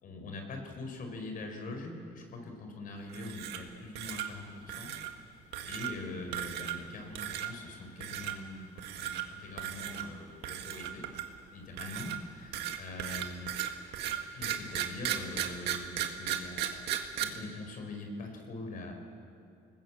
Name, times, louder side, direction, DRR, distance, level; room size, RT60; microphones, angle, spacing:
voice 1, 0.0-4.9 5.6-11.1 11.5-13.5 14.3-18.9, left 2 dB, 55° left, 4 dB, 5.0 m, -43 dB
sound 1, 3.1-3.7 4.0-4.3 4.7-5.1 5.5-5.9 6.3-6.9 7.2-7.5 8.0-8.3 8.8-9.2 9.6-10.0 10.4-11.4 11.8-17.2, right 11 dB, 80° right, 1.8 m, -35 dB
26.5 x 20.0 x 7.7 m, 2.5 s
cardioid pair, 110°, 17 cm